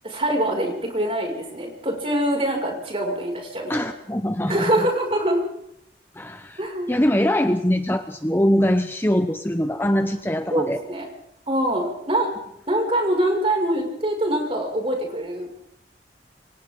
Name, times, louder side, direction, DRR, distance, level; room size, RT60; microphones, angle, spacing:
voice 1, 0.0-3.8 4.5-5.5 6.6-6.9 10.5-11.1 11.5-12.3 12.7-15.6, right 1 dB, 35° right, 0 dB, 6.1 m, -24 dB
voice 2, 3.7-4.9 6.1-10.8, equal, 15° left, 7 dB, 0.9 m, -23 dB
28.0 x 24.0 x 3.9 m, 0.76 s
head